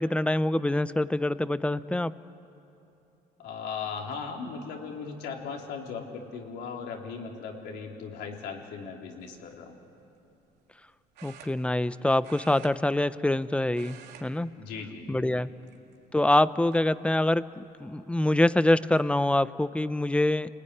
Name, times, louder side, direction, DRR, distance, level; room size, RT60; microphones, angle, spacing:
voice 1, 0.0-2.1 11.2-14.5 15.1-15.5 16.1-20.5, left 1 dB, 5° left, 15 dB, 0.6 m, -25 dB
voice 2, 3.4-9.8 14.6-15.4, left 5 dB, 80° left, 1 dB, 3.7 m, -38 dB
sound 1, 9.2-9.5 11.1-11.9 12.2-13.4 13.7-14.3 14.6-14.8 15.6-16.1 16.7-16.8 18.3-18.4 18.7-19.1, right 9 dB, 85° right, 2.3 m, -50 dB
29.5 x 19.5 x 9.9 m, 2.9 s
cardioid pair, 110°, 17 cm